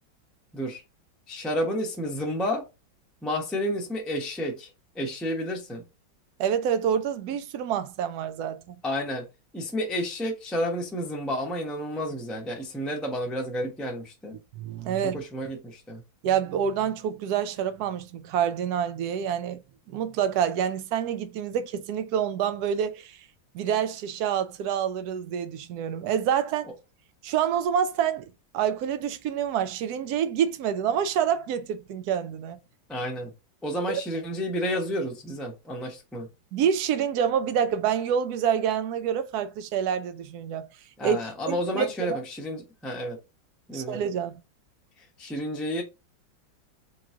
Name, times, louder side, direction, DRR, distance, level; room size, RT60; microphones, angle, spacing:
voice 1, 1.3-2.6 3.2-5.8 8.8-9.2 9.5-14.4 15.0-16.0 32.9-33.3 33.6-36.3 41.0-43.2 43.7-44.0 45.0-45.8, equal, ahead, 0.5 m, -31 dB
voice 2, 6.4-8.7 14.6-15.2 16.2-19.6 19.9-23.2 23.5-26.7 27.2-32.6 33.9-34.0 36.5-40.7 41.0-41.2 41.4-42.2 43.7-44.4, right 8 dB, 70° right, 0.9 m, -27 dB
3.7 x 3.1 x 3.7 m
omnidirectional pair, 2.1 m